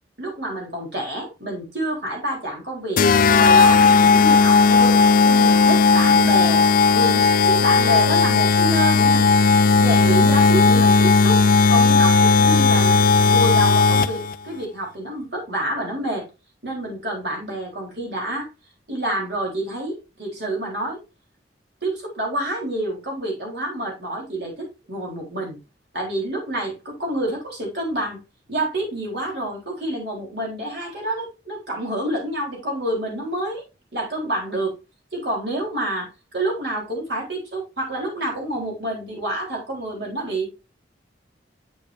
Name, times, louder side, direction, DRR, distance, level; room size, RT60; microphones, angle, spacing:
voice 1, 0.2-3.0 3.3-5.0 5.2-6.6 6.9-11.4 11.7-13.0 13.2-16.2 16.6-18.5 18.9-21.0 21.8-25.6 25.9-28.2 28.5-33.6 33.9-34.8 35.1-36.1 36.3-40.5, right 1 dB, 65° right, -1 dB, 3.8 m, -28 dB
sound 1, 3.0-14.4, left 4 dB, 50° left, 0.4 m, -15 dB
8.5 x 7.0 x 2.6 m, 0.28 s
head